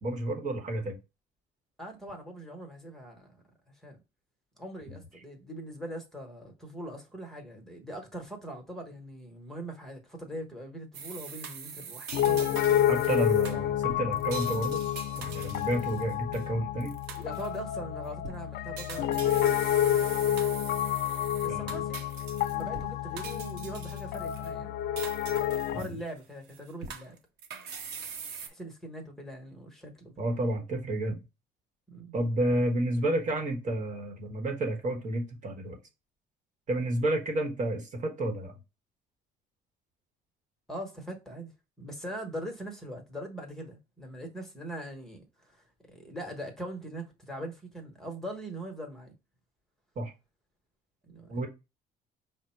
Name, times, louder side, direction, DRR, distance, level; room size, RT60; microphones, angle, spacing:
voice 1, 0.0-1.0 12.9-14.8 15.2-17.0 21.5-21.7 25.7-26.0 30.2-31.2 32.1-35.8 36.7-38.5 50.0-50.1 51.3-51.5, right 1 dB, 50° right, 1.1 m, -30 dB
voice 2, 1.8-3.4 3.8-4.0 4.6-13.1 17.1-20.4 21.4-22.0 22.5-24.8 25.6-27.2 28.4-30.3 31.9-32.1 40.7-41.5 41.8-49.1 51.1-51.5, right 1 dB, ahead, 1.1 m, -42 dB
sound 1, 10.9-16.5 16.8-17.6 18.1-18.4 18.8-22.9 23.2-24.5 25.0-26.2 26.5-28.5, right 6 dB, 80° right, 0.9 m, -42 dB
Piano, 12.1-25.8, left 11 dB, 70° left, 0.4 m, -29 dB
5.0 x 2.1 x 4.4 m
cardioid pair, 110°, 17 cm